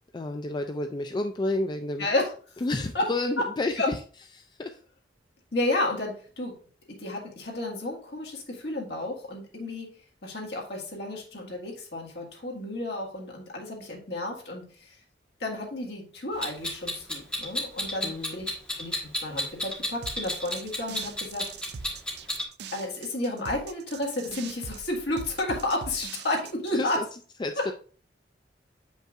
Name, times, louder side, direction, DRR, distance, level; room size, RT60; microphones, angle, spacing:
voice 1, 0.1-2.1 2.6-4.0 4.4-4.8 18.0-18.4 26.7-27.0 27.4-27.7, left 2 dB, 25° left, 6 dB, 0.3 m, -30 dB
voice 2, 2.0-2.3 2.9-3.1 3.8-3.9 5.5-6.5 6.9-10.0 10.2-15.0 15.4-18.5 18.8-21.5 22.7-27.0 27.6-27.7, left 2 dB, 70° left, -1 dB, 1.8 m, -31 dB
Clock, 16.4-22.4, left 1 dB, 5° left, 1.4 m, -31 dB
sound 1, 20.0-26.8, right 5 dB, 65° right, 0.4 m, -42 dB
7.7 x 5.2 x 2.4 m, 0.41 s
head